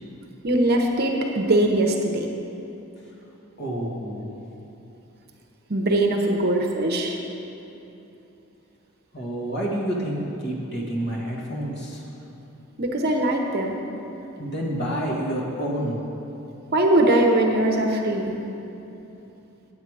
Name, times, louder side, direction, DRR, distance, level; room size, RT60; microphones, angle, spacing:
voice 1, 0.4-2.3 5.7-7.2 12.8-13.8 16.7-18.3, right 1 dB, 45° right, 2 dB, 0.8 m, -21 dB
voice 2, 3.6-4.3 9.1-12.0 14.4-16.0, right 1 dB, 50° left, -3 dB, 1.6 m, -28 dB
9.4 x 8.1 x 4.8 m, 2.9 s
head